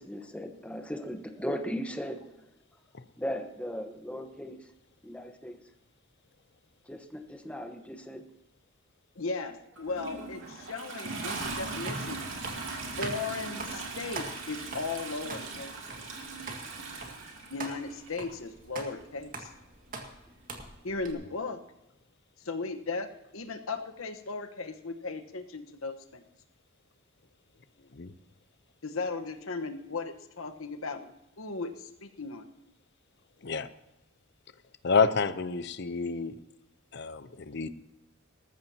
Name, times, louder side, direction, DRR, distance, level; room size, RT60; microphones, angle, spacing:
voice 1, 0.0-2.2 3.2-4.6 5.0-5.6 6.9-8.3, equal, 5° left, 5 dB, 1.2 m, -37 dB
voice 2, 9.2-12.2 13.0-15.7 17.5-19.5 20.8-21.6 22.4-23.1 23.3-26.2 28.8-31.1 31.4-32.5, left 3 dB, 75° left, 7 dB, 1.2 m, -36 dB
Toilet flush, 9.8-18.2 19.2-19.3, right 3 dB, 65° right, 2.9 m, -39 dB
sound 1, 11.8-21.1, right 3 dB, 40° right, 2.0 m, -43 dB
voice 3, 34.8-36.4 36.9-37.7, left 5 dB, 55° left, 13 dB, 0.7 m, -28 dB
19.5 x 14.5 x 2.9 m, 0.92 s
head